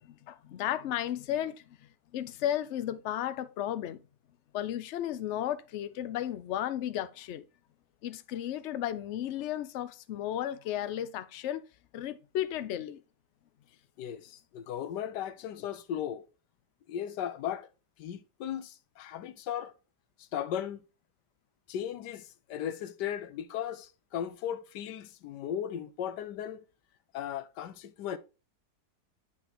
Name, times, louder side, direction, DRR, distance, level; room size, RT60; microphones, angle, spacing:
voice 1, 0.0-1.6 2.1-4.0 4.5-7.4 8.0-11.6 11.9-13.0, left 11 dB, 65° left, 0.7 m, -34 dB
voice 2, 14.0-16.3 16.9-17.7 18.0-19.7 20.3-20.8 21.7-26.6 27.1-28.2, left 10 dB, 90° left, 1.3 m, -36 dB
8.1 x 5.7 x 3.0 m
omnidirectional pair, 1.8 m